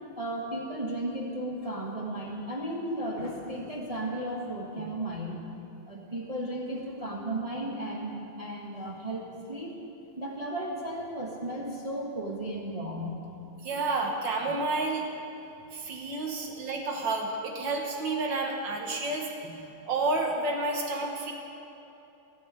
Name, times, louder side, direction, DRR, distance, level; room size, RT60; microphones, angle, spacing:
voice 1, 0.2-5.4 5.9-9.8 10.2-13.2, right 1 dB, 20° right, -3 dB, 1.1 m, -34 dB
voice 2, 13.6-15.0 15.7-21.3, right 3 dB, 65° right, 1 dB, 1.9 m, -30 dB
15.0 x 5.6 x 9.4 m, 2.9 s
omnidirectional pair, 2.3 m